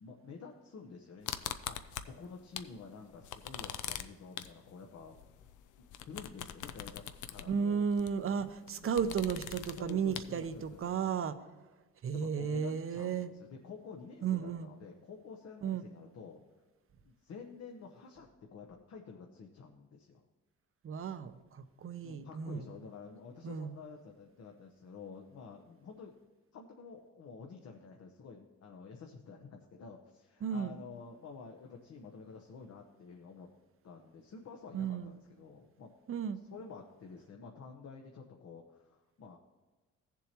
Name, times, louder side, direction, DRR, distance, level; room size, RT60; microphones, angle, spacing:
voice 1, 0.0-5.2 5.8-7.9 8.3-9.2 9.7-11.4 12.1-16.4 17.0-20.2 22.0-26.1 26.5-33.5 33.8-35.9 36.3-39.4, left 5 dB, 55° left, 2 dB, 0.9 m, -50 dB
sound 1, 1.2-2.8 3.1-10.9, left 10 dB, 80° left, 0.6 m, -43 dB
voice 2, 7.5-11.4 12.0-13.3 14.2-14.7 15.6-15.8 20.8-22.7 23.4-23.8 30.4-30.8 34.7-35.1 36.1-36.4, right 7 dB, 45° right, 12 dB, 0.7 m, -34 dB
15.5 x 7.2 x 2.9 m, 1.2 s
cardioid pair, 90°, 30 cm